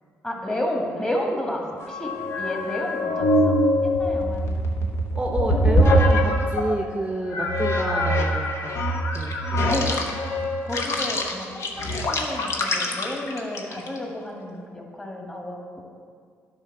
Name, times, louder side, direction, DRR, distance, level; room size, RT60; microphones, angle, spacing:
voice 1, 0.2-3.5 3.8-5.0 9.7-9.9 10.6-15.8, left 1 dB, 20° left, 0 dB, 1.9 m, -31 dB
sound 1, 1.8-6.8 7.3-14.0, equal, 60° left, 1.0 m, -23 dB
voice 2, 5.2-8.8 9.1-9.3, right 1 dB, 20° right, 2 dB, 0.8 m, -28 dB
9.8 x 4.0 x 6.0 m, 2.1 s
supercardioid pair, 65°, 5 cm